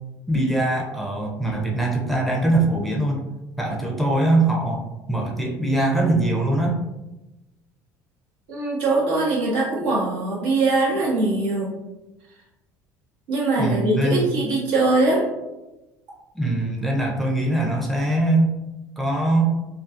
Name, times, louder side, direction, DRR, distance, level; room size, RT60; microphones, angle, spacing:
voice 1, 0.3-3.2 3.6-6.8 13.6-14.3 16.3-18.5 19.0-19.5, right 2 dB, ahead, -1 dB, 0.5 m, -22 dB
voice 2, 8.5-11.7 13.3-15.2, right 2 dB, 75° right, -5 dB, 1.0 m, -22 dB
2.4 x 2.3 x 2.4 m, 1.0 s
hypercardioid pair, 75°, 9 cm